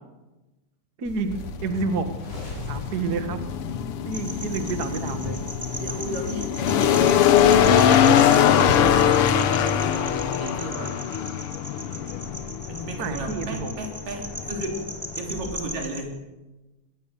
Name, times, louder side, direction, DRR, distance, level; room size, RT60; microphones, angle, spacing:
voice 1, 1.0-2.1 2.7-3.4 4.0-5.4 7.1-7.2 13.0-13.7, right 4 dB, 40° right, 8 dB, 1.5 m, -29 dB
sound 1, 1.1-10.3, left 1 dB, 30° left, 7.2 m, -39 dB
sound 2, 1.3-15.8, left 9 dB, 75° left, 1.2 m, -22 dB
sound 3, 4.1-16.0, right 1 dB, 10° right, 2.5 m, -38 dB
voice 2, 5.8-6.9 7.4-11.0 12.7-14.8 15.2-16.2, right 1 dB, 75° right, 2 dB, 4.9 m, -34 dB
21.5 x 20.0 x 6.8 m, 1.1 s
omnidirectional pair, 3.8 m